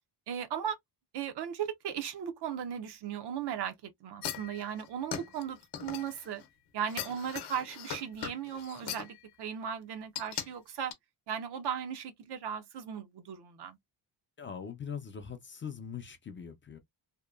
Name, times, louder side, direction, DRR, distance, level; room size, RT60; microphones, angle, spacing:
voice 1, 0.3-0.8 1.1-6.4 6.7-10.9 11.3-13.8, right 8 dB, 75° right, 0.7 m, -37 dB
sound 1, 4.2-6.5 6.9-9.2 10.1-10.5 10.9-11.0, left 9 dB, 75° left, 0.7 m, -39 dB
voice 2, 14.4-16.8, left 7 dB, 30° left, 0.4 m, -41 dB
2.9 x 2.1 x 2.2 m
cardioid pair, 155°, 41 cm